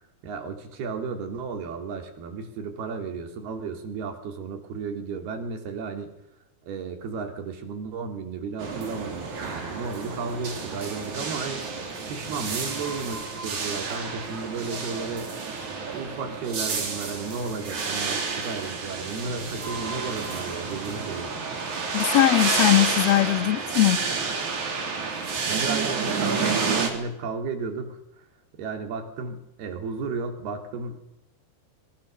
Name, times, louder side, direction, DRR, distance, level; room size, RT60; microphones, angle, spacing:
voice 1, 0.2-6.1 6.6-11.6 12.1-15.3 15.9-21.3 25.5-28.0 28.5-31.0, right 4 dB, 70° right, 5 dB, 5.0 m, -33 dB
sound 1, 8.6-26.9, right 4 dB, 50° right, 4.7 m, -30 dB
voice 2, 21.9-24.0, left 15 dB, 60° left, 12 dB, 1.8 m, -20 dB
26.0 x 22.5 x 6.8 m, 0.89 s
omnidirectional pair, 4.6 m